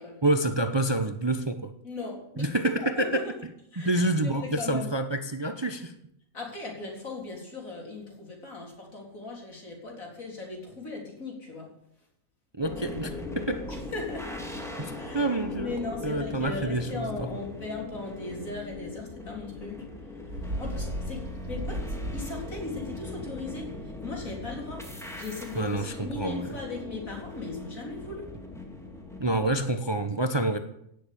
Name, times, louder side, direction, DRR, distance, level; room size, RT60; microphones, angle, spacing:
voice 1, 0.2-1.7 2.4-3.3 3.8-5.9 12.6-13.7 14.8-17.3 25.5-26.5 29.2-30.6, right 2 dB, 25° right, 8 dB, 0.7 m, -28 dB
voice 2, 1.8-3.2 3.7-4.9 6.3-11.7 13.7-14.4 15.0-19.8 20.4-21.2 21.5-21.8 22.1-28.3, left 3 dB, 70° left, -1 dB, 4.2 m, -38 dB
sound 1, 12.6-29.5, left 2 dB, ahead, 2.3 m, -40 dB
Bird, 20.3-22.7, right 1 dB, 75° right, 3.7 m, -35 dB
17.0 x 7.2 x 8.5 m, 0.76 s
omnidirectional pair, 1.5 m